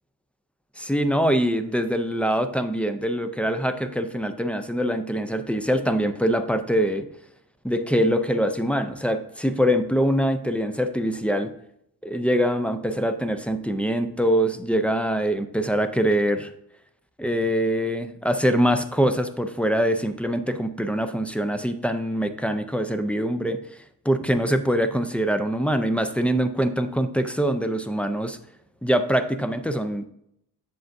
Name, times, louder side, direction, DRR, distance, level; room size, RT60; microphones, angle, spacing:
voice 1, 0.8-7.0 7.6-11.5 12.0-16.5 17.2-23.6 24.1-28.4 28.8-30.1, equal, 5° left, 8 dB, 0.4 m, -24 dB
7.9 x 6.9 x 2.6 m, 0.75 s
wide cardioid pair, 130°, 39 cm